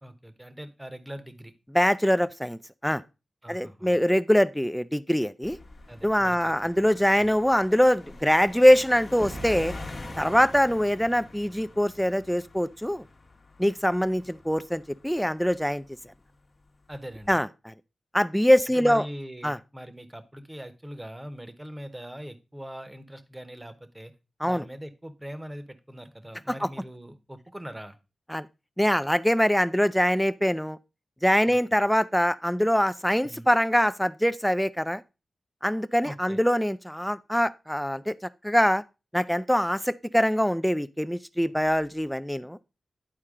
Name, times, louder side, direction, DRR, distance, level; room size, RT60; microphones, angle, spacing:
voice 1, 0.0-1.5 3.4-4.0 5.9-6.5 6.8-6.9 7.2-7.3 16.9-17.4 18.7-24.1 24.4-28.0 31.5-31.6 33.2-33.5 36.0-36.4, equal, 15° right, 1.0 m, -41 dB
voice 2, 1.7-3.0 3.5-5.6 6.0-9.7 10.2-13.0 13.6-15.8 17.3-17.7 18.1-19.1 19.4-19.6 24.4-24.6 26.6-26.7 28.3-28.5 28.8-30.8 31.2-35.0 35.6-38.2 38.4-38.8 39.1-42.6, equal, 5° left, 0.4 m, -23 dB
sound 1, 5.4-16.1 16.9-17.3, left 3 dB, 55° left, 1.1 m, -45 dB
sound 2, 9.2-11.8, right 4 dB, 50° right, 0.5 m, -44 dB
9.9 x 4.4 x 3.7 m
cardioid pair, 60°, 0 cm